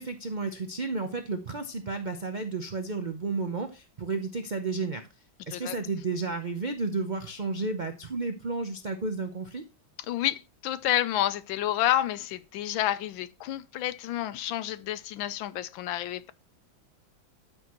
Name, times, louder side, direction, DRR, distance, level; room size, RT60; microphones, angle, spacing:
voice 1, 0.0-5.0 5.5-9.6, right 3 dB, 80° right, 0.4 m, -32 dB
voice 2, 10.1-16.3, left 13 dB, 80° left, 1.4 m, -29 dB
13.0 x 6.3 x 3.0 m
omnidirectional pair, 2.2 m